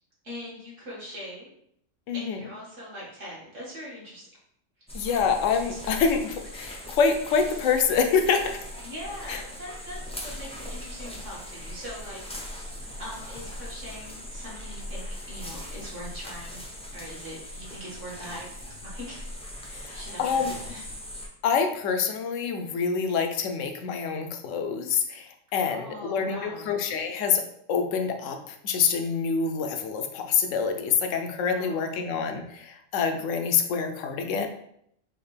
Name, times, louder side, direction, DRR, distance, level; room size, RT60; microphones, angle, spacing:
voice 1, 0.2-1.5 2.1-4.3 5.7-5.8 8.8-12.2 12.6-16.6 16.9-18.5 18.8-20.8 25.6-26.7 31.5-32.2, equal, 70° right, -6 dB, 2.1 m, -41 dB
voice 2, 2.1-2.4 4.9-8.6 9.3-9.4 19.7-20.5 21.4-27.4 27.7-34.5, left 6 dB, 80° left, 5 dB, 1.0 m, -26 dB
sound 1, 4.9-21.3, equal, 10° left, 0.3 m, -40 dB
5.0 x 2.6 x 3.3 m, 0.71 s
omnidirectional pair, 1.3 m